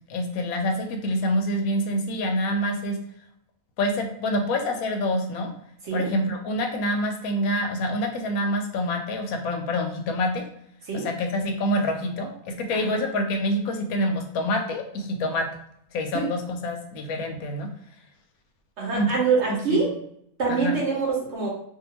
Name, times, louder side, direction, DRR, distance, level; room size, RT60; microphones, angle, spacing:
voice 1, 0.1-3.0 3.8-5.5 5.9-10.4 11.0-15.4 15.9-17.7 18.9-19.1 19.5-19.9 20.6-20.7, left 1 dB, 75° left, 3 dB, 1.0 m, -26 dB
voice 2, 18.8-19.9 20.4-21.5, right 4 dB, 55° right, -3 dB, 0.9 m, -25 dB
2.7 x 2.3 x 2.9 m, 0.71 s
omnidirectional pair, 1.6 m